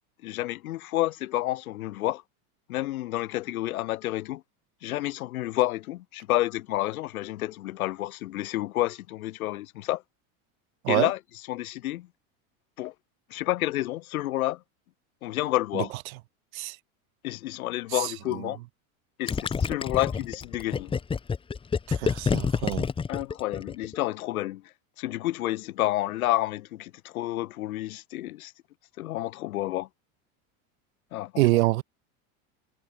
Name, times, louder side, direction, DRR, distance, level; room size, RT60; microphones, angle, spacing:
voice 1, 0.2-2.2 2.7-4.4 4.8-10.0 10.9-11.2 11.5-12.1 12.8-12.9 13.3-14.6 15.2-15.9 17.2-18.6 19.2-20.9 23.1-24.6 25.0-28.5 29.0-29.9 31.1-31.5, left 16 dB, 80° left, 3.5 m, -29 dB
voice 2, 17.9-18.5 21.9-22.9 31.4-31.8, right 20 dB, 75° right, 2.3 m, -26 dB
Gurgling, 19.3-24.0, left 5 dB, 15° left, 0.6 m, -28 dB
supercardioid pair, 110°, 42 cm